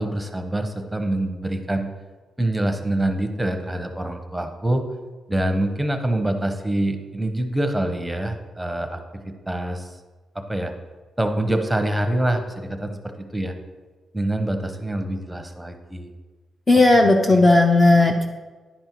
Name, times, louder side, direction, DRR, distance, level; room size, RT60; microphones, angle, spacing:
voice 1, 0.0-1.9 2.4-4.8 5.3-9.9 10.3-10.7 11.2-13.5 14.1-16.1 16.9-17.4, right 1 dB, 5° right, 6 dB, 0.9 m, -25 dB
voice 2, 16.7-18.3, left 2 dB, 20° left, 3 dB, 0.6 m, -15 dB
10.0 x 5.3 x 4.5 m, 1.3 s
cardioid pair, 100°, 0 cm